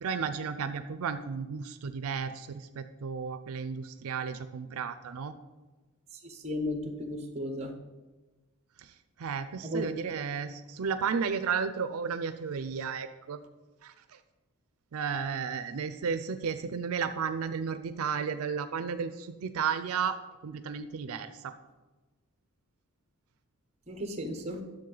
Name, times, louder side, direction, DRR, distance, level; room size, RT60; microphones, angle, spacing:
voice 1, 0.0-5.3 8.8-13.4 13.8-14.2 14.9-20.2 20.4-21.5, right 6 dB, 80° right, 11 dB, 0.4 m, -33 dB
voice 2, 6.2-7.7 9.6-9.9 23.9-24.6, left 1 dB, 30° right, 5 dB, 1.0 m, -34 dB
10.5 x 7.1 x 3.9 m, 1.2 s
head